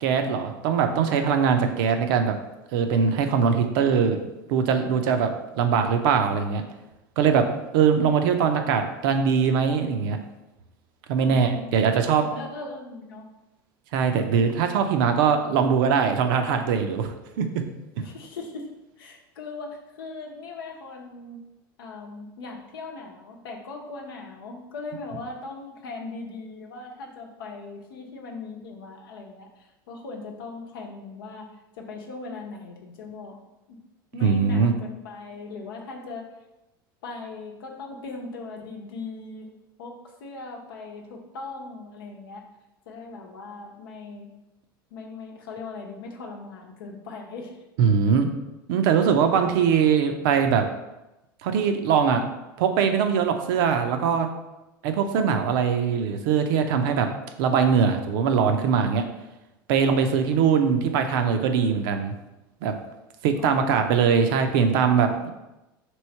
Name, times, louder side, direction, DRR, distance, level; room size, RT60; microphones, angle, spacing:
voice 1, 0.0-2.4 2.7-4.2 4.5-5.3 5.6-6.6 7.2-7.5 7.7-10.2 11.1-12.3 13.9-17.6 34.2-34.7 47.8-48.3 48.7-50.6 51.4-52.2 52.6-54.3 54.8-57.1 57.4-59.1 59.7-62.1 62.6-62.7 63.2-65.3, right 6 dB, 70° right, 6 dB, 0.5 m, -21 dB
voice 2, 11.2-11.8 12.3-13.3 18.0-21.4 21.8-31.5 31.7-33.4 33.7-33.8 34.1-36.3 37.0-42.4 42.9-44.3 44.9-47.6, left 3 dB, 80° left, 1 dB, 0.8 m, -39 dB
3.1 x 3.0 x 4.3 m, 0.97 s
hypercardioid pair, 90°, 12 cm